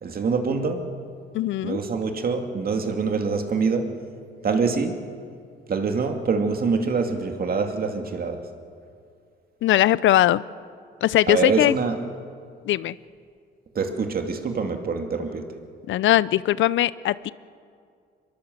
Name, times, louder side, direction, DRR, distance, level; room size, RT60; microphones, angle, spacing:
voice 1, 0.0-0.8 1.6-3.9 4.4-5.0 5.7-8.4 11.3-12.0 13.7-15.5, right 4 dB, 50° right, 5 dB, 2.6 m, -25 dB
voice 2, 1.3-1.8 9.6-10.4 11.0-11.7 12.7-12.9 15.9-17.3, left 13 dB, 75° left, 18 dB, 0.6 m, -20 dB
24.0 x 22.0 x 7.9 m, 2.3 s
cardioid pair, 90°, 20 cm